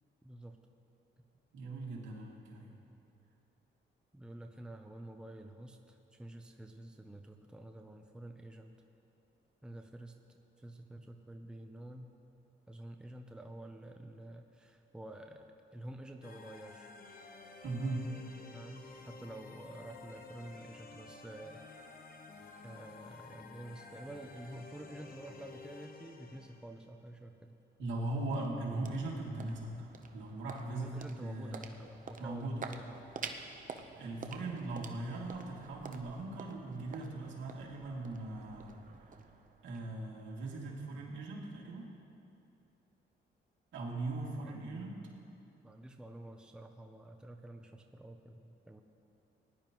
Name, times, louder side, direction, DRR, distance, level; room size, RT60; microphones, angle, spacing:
voice 1, 0.2-0.6 4.1-8.7 9.6-10.1 10.6-12.1 12.7-16.9 18.5-21.6 22.6-27.6 30.7-32.9 44.2-45.1 45.6-48.8, right 1 dB, 5° right, 5 dB, 0.7 m, -49 dB
voice 2, 1.5-2.7 17.6-18.1 27.8-29.9 30.1-31.7 32.2-32.6 33.9-38.7 39.1-39.2 39.6-41.9 43.7-45.0, right 2 dB, 70° right, -3 dB, 2.5 m, -39 dB
sound 1, 16.2-27.0, left 4 dB, 45° left, 1.1 m, -52 dB
sound 2, 28.1-40.3, right 5 dB, 40° right, 0.8 m, -49 dB
19.0 x 11.0 x 3.1 m, 2.7 s
cardioid pair, 90°, 20 cm